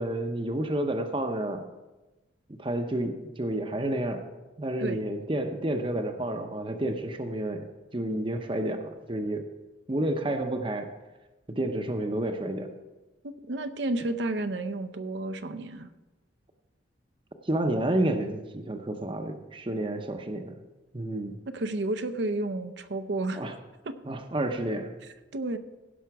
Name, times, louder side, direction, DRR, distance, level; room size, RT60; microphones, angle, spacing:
voice 1, 0.0-1.7 2.6-4.2 4.6-7.7 7.9-9.5 9.9-10.9 11.5-12.7 17.4-20.5 20.9-21.4 23.4-23.5 24.1-24.9, right 1 dB, 25° right, 6 dB, 0.7 m, -30 dB
voice 2, 13.2-15.9 21.5-23.5 23.8-24.0 25.3-25.6, right 2 dB, 60° right, 10 dB, 0.6 m, -31 dB
16.5 x 5.9 x 4.7 m, 1.1 s
head